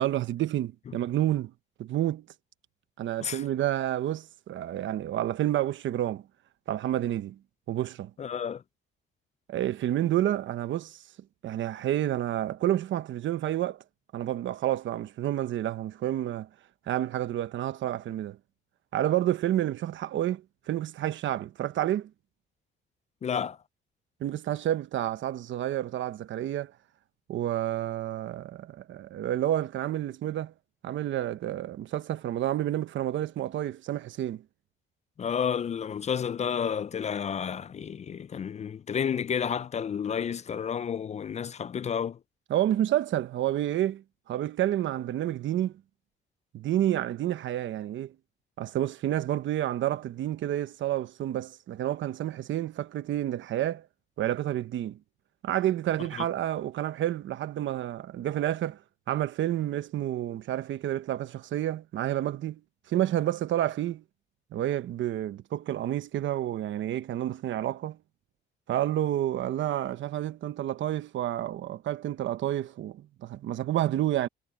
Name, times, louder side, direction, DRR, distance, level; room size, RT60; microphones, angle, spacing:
voice 1, 0.0-1.5 1.8-2.3 3.0-6.2 6.7-7.4 7.7-8.1 9.5-11.0 11.4-13.8 14.1-16.5 16.9-18.4 18.9-22.1 24.2-26.7 27.3-30.5 30.8-34.4 42.5-45.7 46.5-48.1 48.6-53.9 54.2-55.0 55.4-58.8 59.1-62.6 62.9-64.0 64.5-68.0 68.7-74.3, right 12 dB, 75° right, 1.1 m, -29 dB
voice 2, 8.2-8.6 23.2-23.6 35.2-42.2 56.2-56.3, left 7 dB, 35° left, 0.4 m, -31 dB
cardioid pair, 90°, 20 cm